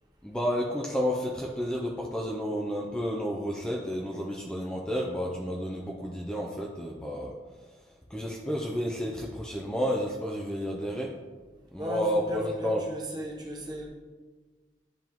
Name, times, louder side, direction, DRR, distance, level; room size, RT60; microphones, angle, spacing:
voice 1, 0.2-7.3 8.1-11.1 11.7-12.8, equal, 5° left, -2 dB, 0.5 m, -31 dB
voice 2, 11.8-13.9, equal, 25° right, -1 dB, 0.9 m, -35 dB
10.5 x 3.5 x 3.0 m, 1.4 s
head